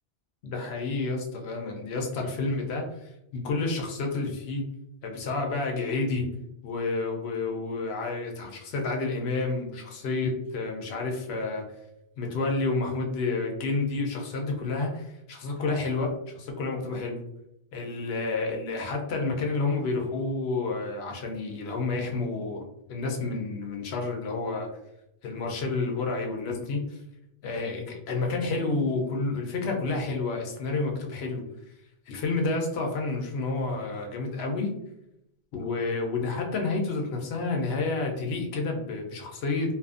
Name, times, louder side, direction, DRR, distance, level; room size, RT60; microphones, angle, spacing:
voice 1, 0.4-4.6 5.0-6.3 6.6-11.6 12.2-17.2 17.7-24.7 25.2-27.0 27.4-31.4 32.1-34.7 35.5-39.7, left 3 dB, 80° left, 1 dB, 0.8 m, -30 dB
2.5 x 2.5 x 2.4 m, 0.82 s
omnidirectional pair, 1.0 m